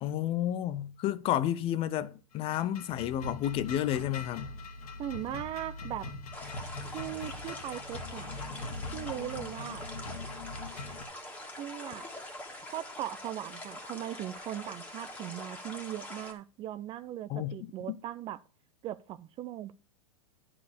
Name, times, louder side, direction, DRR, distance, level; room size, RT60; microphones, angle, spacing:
voice 1, 0.0-4.5 17.3-18.0, left 12 dB, 30° left, 0.5 m, -31 dB
sound 1, 2.3-11.0, left 3 dB, 75° left, 1.8 m, -42 dB
voice 2, 5.0-6.1 6.9-8.3 8.9-9.8 11.6-12.0 12.6-18.4 18.8-19.7, right 12 dB, 25° right, 0.5 m, -39 dB
sound 2, 6.3-16.3, left 1 dB, 5° left, 1.9 m, -44 dB
10.0 x 4.9 x 6.8 m
hypercardioid pair, 125°, 19 cm